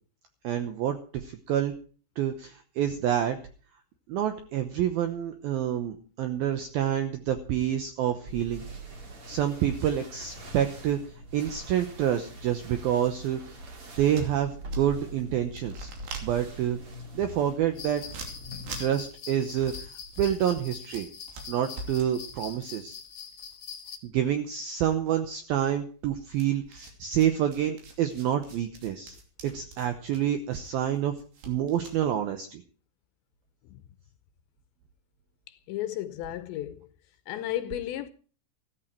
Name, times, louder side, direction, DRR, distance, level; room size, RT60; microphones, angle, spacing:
voice 1, 0.4-1.7 2.2-3.4 4.1-8.6 9.3-11.0 11.3-13.6 14.0-15.9 16.2-16.8 17.1-18.0 18.8-19.7 20.2-21.1 21.5-23.0 24.0-29.2 29.4-31.2 31.5-32.6, right 10 dB, 80° right, 2.1 m, -28 dB
sound 1, 8.3-19.0, right 2 dB, 35° right, 2.9 m, -43 dB
sound 2, 12.9-15.1 15.4-24.2 24.5-25.3 26.3-32.0, right 3 dB, 60° right, 4.7 m, -45 dB
sound 3, 17.8-24.0, left 7 dB, 60° left, 2.1 m, -43 dB
voice 2, 35.5-36.9 37.3-38.1, left 13 dB, 80° left, 2.8 m, -34 dB
14.5 x 14.5 x 4.5 m
omnidirectional pair, 5.6 m